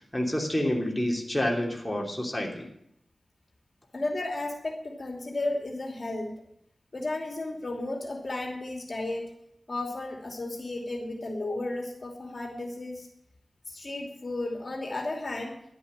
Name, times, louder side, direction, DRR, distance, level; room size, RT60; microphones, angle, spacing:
voice 1, 0.0-2.7, left 1 dB, 10° left, 0 dB, 3.1 m, -28 dB
voice 2, 3.9-6.3 6.9-9.3 9.7-13.1 13.7-15.5, left 2 dB, 50° left, 2 dB, 2.8 m, -33 dB
11.5 x 8.2 x 8.7 m, 0.74 s
cardioid pair, 55°, 0 cm